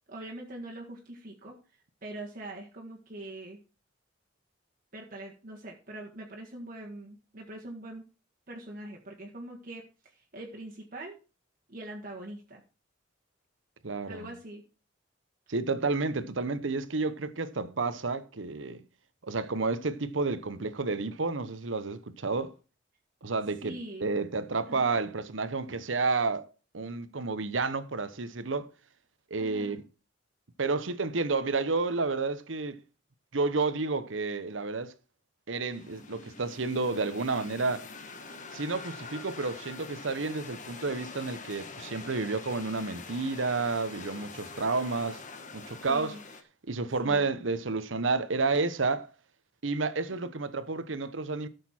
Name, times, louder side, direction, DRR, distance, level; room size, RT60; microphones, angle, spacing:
voice 1, 0.1-1.6 2.0-3.6 4.9-8.0 8.5-11.2 11.7-12.6 14.1-14.6 23.6-24.1 24.7-25.0 29.4-29.8 45.9-46.2 47.0-47.3 50.2-50.4, right 1 dB, 45° right, 1.8 m, -43 dB
voice 2, 13.8-14.3 15.5-18.8 19.2-22.5 23.2-23.8 24.0-26.5 26.7-28.7 29.3-29.8 30.6-32.8 33.3-34.9 35.5-37.9 38.5-45.2 45.5-46.2 46.7-49.1 49.6-51.5, right 3 dB, 80° right, 1.0 m, -30 dB
sound 1, 35.7-46.4, left 4 dB, 40° left, 1.3 m, -45 dB
13.5 x 6.7 x 4.4 m
head